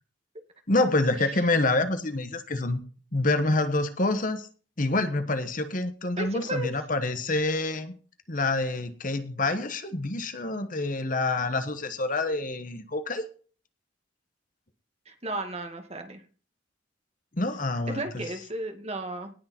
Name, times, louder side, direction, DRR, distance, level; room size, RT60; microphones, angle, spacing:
voice 1, 0.7-2.8 3.1-4.5 4.8-7.9 8.3-13.2 17.4-18.2, left 2 dB, 45° left, 9 dB, 1.3 m, -27 dB
voice 2, 6.2-6.7 15.1-16.2 17.9-19.3, right 2 dB, 30° right, 5 dB, 2.2 m, -34 dB
18.0 x 6.7 x 4.4 m, 0.38 s
head